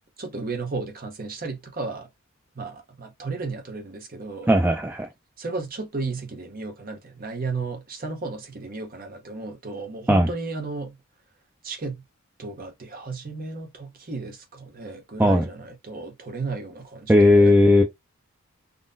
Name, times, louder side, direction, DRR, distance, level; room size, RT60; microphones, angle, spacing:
voice 1, 0.2-2.1 2.6-4.5 5.4-10.9 11.6-12.0 12.4-17.5, right 3 dB, 40° right, 0.8 m, -34 dB
voice 2, 4.5-5.1 10.1-10.3 15.2-15.5 17.1-17.8, left 1 dB, 10° right, 0.3 m, -16 dB
3.7 x 2.2 x 2.6 m
head